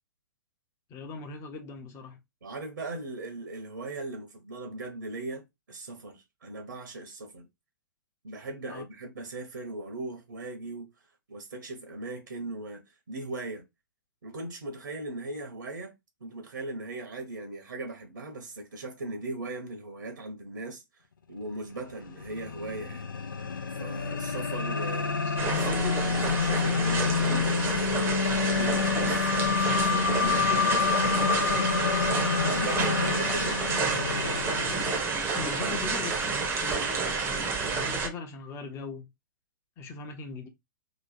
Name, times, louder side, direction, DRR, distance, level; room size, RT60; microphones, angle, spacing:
voice 1, 0.9-2.2 8.7-8.8 25.1-26.8 35.3-39.1 39.8-40.5, left 4 dB, 25° left, 0.9 m, -40 dB
voice 2, 2.4-7.5 8.2-10.9 11.3-13.6 14.2-15.9 16.2-20.8 21.3-23.1 23.8-25.2 25.4-28.0 28.4-31.6 32.4-33.6, right 2 dB, 70° right, 1.0 m, -38 dB
sound 1, 21.9-35.0, left 5 dB, 75° left, 0.7 m, -28 dB
sound 2, 25.4-38.1, right 4 dB, 20° right, 0.8 m, -30 dB
3.1 x 2.3 x 4.2 m
figure-of-eight pair, 115°, 11 cm